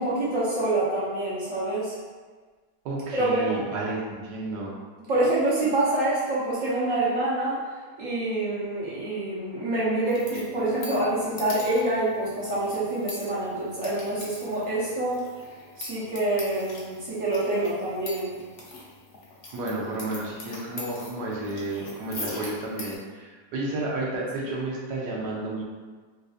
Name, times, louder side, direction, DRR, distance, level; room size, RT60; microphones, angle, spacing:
voice 1, 0.0-2.0 3.1-3.6 5.1-7.6 8.0-15.2 15.8-18.3, right 2 dB, 55° right, -9 dB, 1.2 m, -26 dB
voice 2, 2.8-4.7 19.5-25.6, right 2 dB, 80° right, -4 dB, 1.2 m, -31 dB
sound 1, 10.0-22.9, left 2 dB, 75° left, 0.5 m, -42 dB
3.9 x 2.5 x 2.4 m, 1.4 s
omnidirectional pair, 1.8 m